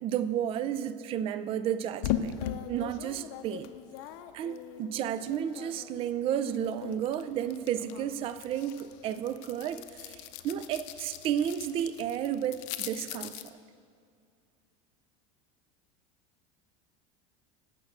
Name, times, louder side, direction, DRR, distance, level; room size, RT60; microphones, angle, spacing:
voice 1, 0.0-2.4 2.7-3.7 4.3-13.5, right 9 dB, 35° right, 13 dB, 0.3 m, -32 dB
sound 1, 2.0-6.0 6.3-13.5, left 10 dB, 65° left, 0.5 m, -40 dB
8.5 x 5.9 x 7.1 m, 2.3 s
supercardioid pair, 125°, 17 cm